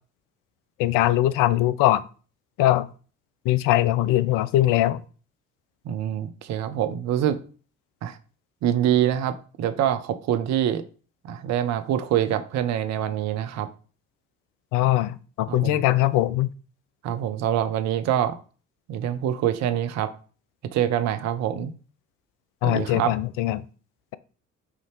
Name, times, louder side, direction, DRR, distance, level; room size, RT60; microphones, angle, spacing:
voice 1, 0.8-2.0 2.6-2.9 3.4-5.0 14.7-16.5 22.6-23.6, left 14 dB, 55° left, 15 dB, 0.5 m, -21 dB
voice 2, 5.9-7.4 8.0-8.2 8.6-10.8 11.2-13.7 15.5-15.8 17.0-18.4 18.9-20.1 20.7-21.7 22.6-23.1, right 10 dB, 45° right, 10 dB, 0.6 m, -25 dB
5.6 x 2.8 x 3.1 m, 0.38 s
figure-of-eight pair, 45°, 39 cm